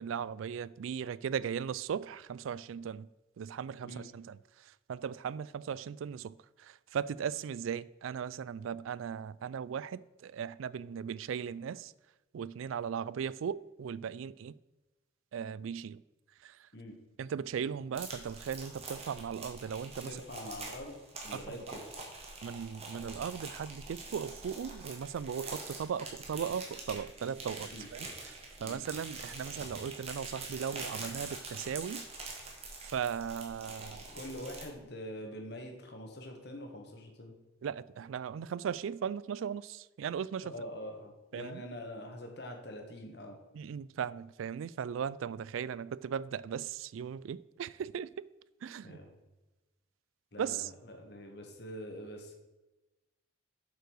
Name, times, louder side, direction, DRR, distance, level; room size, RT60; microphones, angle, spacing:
voice 1, 0.0-3.1 3.4-4.4 4.9-6.3 6.6-11.9 12.3-14.5 15.3-16.0 16.4-16.6 17.2-20.2 21.3-21.8 22.4-32.0 32.8-34.0 37.6-40.5 41.3-41.6 43.5-48.3 48.6-49.0 50.4-50.7, right 7 dB, 85° right, 0.3 m, -37 dB
sound 1, 17.9-34.7, right 3 dB, 30° right, 1.8 m, -45 dB
voice 2, 20.0-21.8 27.7-27.9 28.6-28.8 34.1-37.3 40.5-43.4 48.8-49.1 50.3-52.3, left 1 dB, 55° left, 1.6 m, -44 dB
7.7 x 5.6 x 6.2 m
head